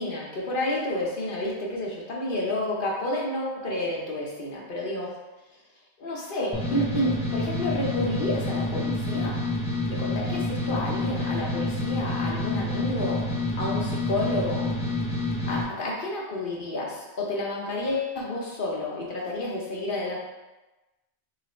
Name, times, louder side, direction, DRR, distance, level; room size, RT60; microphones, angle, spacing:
voice 1, 0.0-5.1 6.0-9.4 9.9-13.3 13.6-14.7 15.5-20.2, left 1 dB, 50° left, -3 dB, 0.8 m, -30 dB
sound 1, 6.5-15.6, left 2 dB, 10° left, 0.4 m, -28 dB
3.1 x 2.5 x 4.2 m, 1.1 s
omnidirectional pair, 1.2 m